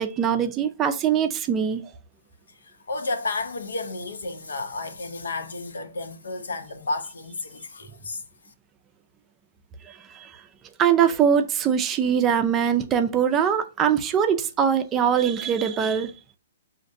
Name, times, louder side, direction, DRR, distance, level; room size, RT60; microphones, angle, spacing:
voice 1, 0.0-1.8 9.8-10.3 10.8-16.1, right 8 dB, 20° right, 0.4 m, -22 dB
voice 2, 2.9-8.2, left 3 dB, 90° left, 0.7 m, -32 dB
6.1 x 2.5 x 2.6 m
hypercardioid pair, 145°, 0 cm